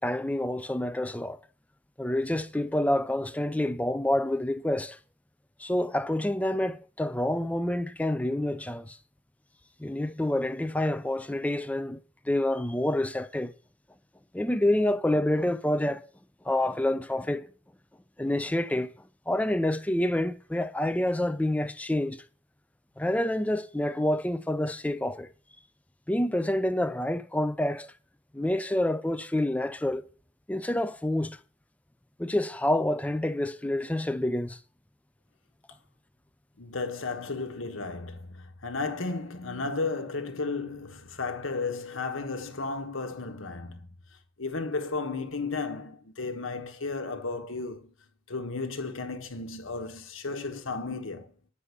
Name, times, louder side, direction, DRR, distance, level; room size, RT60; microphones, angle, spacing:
voice 1, 0.0-1.4 2.0-5.0 5.6-9.0 9.8-12.0 12.3-13.5 14.3-16.1 16.4-17.5 18.2-18.9 19.3-22.2 23.0-25.3 26.1-27.9 28.3-30.0 30.5-31.4 32.2-34.6, left 1 dB, 5° left, 0.4 m, -28 dB
voice 2, 36.6-43.9 44.4-47.9 48.3-51.3, left 3 dB, 85° left, 1.3 m, -34 dB
9.9 x 5.6 x 8.2 m
head